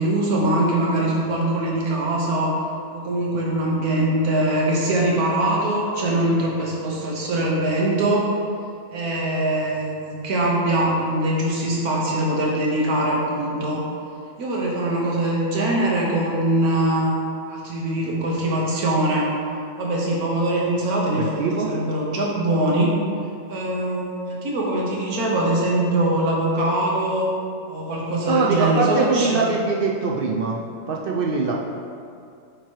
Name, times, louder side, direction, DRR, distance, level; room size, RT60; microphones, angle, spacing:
voice 1, 0.0-2.6 2.9-8.3 8.9-13.8 14.4-17.1 17.5-19.3 19.8-22.9 23.5-27.3 27.7-29.4, right 1 dB, 90° right, -3 dB, 1.7 m, -22 dB
voice 2, 21.2-21.7 28.3-30.6 30.9-31.5, right 4 dB, 70° right, -1 dB, 0.5 m, -22 dB
8.4 x 3.0 x 4.6 m, 2.4 s
omnidirectional pair, 1.5 m